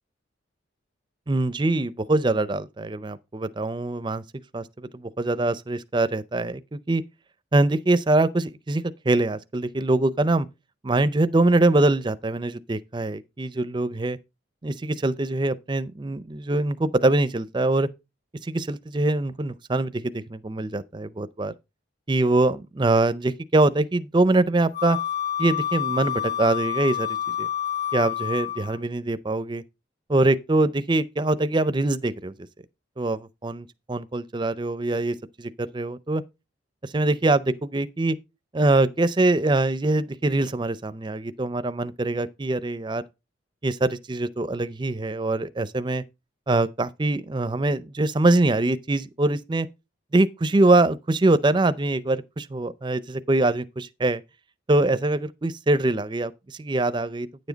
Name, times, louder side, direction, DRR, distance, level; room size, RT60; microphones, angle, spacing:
voice 1, 1.3-4.2 4.5-7.0 7.5-10.5 10.8-14.2 14.6-17.9 18.4-21.5 22.1-25.0 25.4-27.5 27.9-29.6 30.1-32.3 33.0-36.2 36.8-38.2 38.5-43.0 43.6-46.0 46.5-49.7 50.1-54.2 54.7-57.5, right 2 dB, 25° right, 0.5 m, -23 dB
Wind instrument woodwind instrument, 24.7-28.8, left 10 dB, 60° left, 1.0 m, -28 dB
9.6 x 7.2 x 3.9 m
head